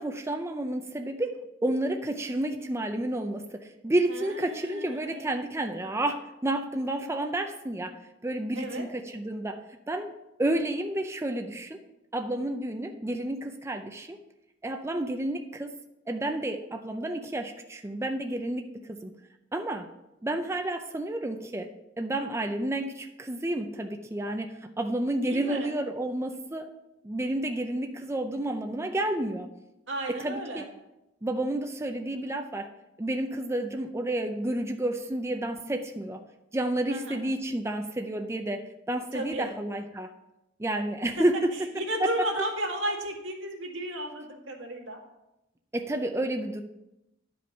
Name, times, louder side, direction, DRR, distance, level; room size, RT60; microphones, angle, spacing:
voice 1, 0.0-8.0 8.2-9.6 9.9-10.1 10.4-11.8 12.1-14.2 14.6-15.7 16.1-19.1 19.5-19.9 20.2-21.7 22.0-26.7 27.0-29.5 30.1-30.6 31.2-32.7 33.0-36.2 36.5-40.1 40.6-41.5 42.0-42.3 45.7-46.6, right 1 dB, 15° right, 5 dB, 0.5 m, -30 dB
voice 2, 4.1-5.3 8.5-8.8 25.2-25.7 29.9-30.7 36.9-37.2 39.1-39.5 41.8-45.0, right 1 dB, 85° right, 0 dB, 1.9 m, -34 dB
11.0 x 5.2 x 5.5 m, 0.93 s
head